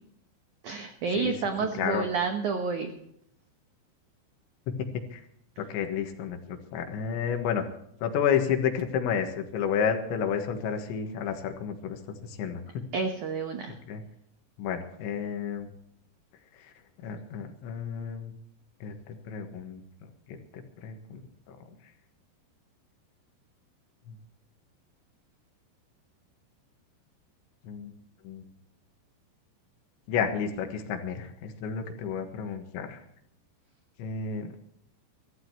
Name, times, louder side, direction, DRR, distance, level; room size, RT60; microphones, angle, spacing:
voice 1, 0.6-3.0 12.9-13.8, right 5 dB, 90° right, 5 dB, 1.7 m, -30 dB
voice 2, 1.8-2.1 4.7-5.2 5.6-7.6 8.0-12.8 13.9-14.0 14.6-15.7 16.6-16.7 17.0-18.3 18.8-19.8 20.3-21.2 21.5-21.6 24.1-24.2 27.6-27.9 28.3-28.4 30.1-33.0 34.0-34.5, left 7 dB, 80° left, 5 dB, 3.8 m, -31 dB
24.0 x 14.0 x 3.0 m, 0.73 s
omnidirectional pair, 5.3 m